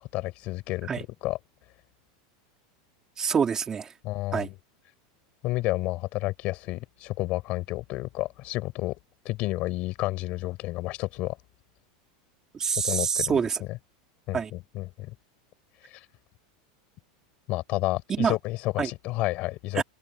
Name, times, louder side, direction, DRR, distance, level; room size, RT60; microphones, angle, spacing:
voice 1, 0.0-1.4 4.0-4.5 5.4-9.0 9.2-11.4 12.8-13.4 13.7-13.8 14.3-15.1 15.9-16.0 17.5-19.8, left 19 dB, 40° left, 4.8 m, -31 dB
voice 2, 3.2-3.9 4.3-4.5 12.5-13.6 14.3-14.5 18.1-18.3 18.8-18.9 19.7-19.8, right 6 dB, 15° right, 3.5 m, -26 dB
supercardioid pair, 160°, 3 cm